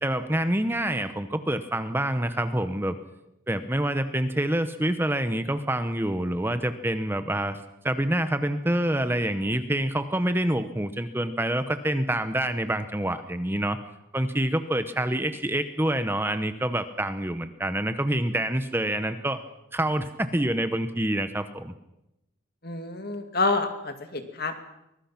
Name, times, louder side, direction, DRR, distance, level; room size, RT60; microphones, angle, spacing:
voice 1, 0.0-3.0 3.5-7.6 7.8-13.8 14.1-19.4 19.7-21.7, right 1 dB, 10° right, 10 dB, 0.9 m, -27 dB
voice 2, 22.6-24.5, left 3 dB, 50° left, 7 dB, 2.5 m, -28 dB
23.5 x 21.0 x 6.0 m, 0.88 s
head